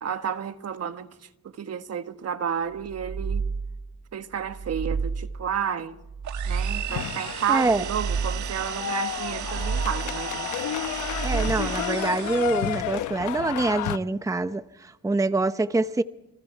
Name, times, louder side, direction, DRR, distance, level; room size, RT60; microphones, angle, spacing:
voice 1, 0.0-1.1 1.4-3.4 4.1-5.9 6.4-10.5, right 8 dB, 55° right, 1.6 m, -31 dB
sound 1, 2.8-3.9 4.4-5.5 6.0-7.1 7.6-8.7 9.2-10.3 10.8-11.9, right 5 dB, 35° right, 1.8 m, -31 dB
sound 2, 6.2-13.0, right 10 dB, 70° right, 1.6 m, -36 dB
sound 3, 6.9-14.0, left 13 dB, 80° left, 1.0 m, -32 dB
voice 2, 7.5-7.8 11.2-16.0, right 2 dB, 10° right, 0.8 m, -25 dB
28.0 x 26.5 x 4.6 m
cardioid pair, 90°, 30 cm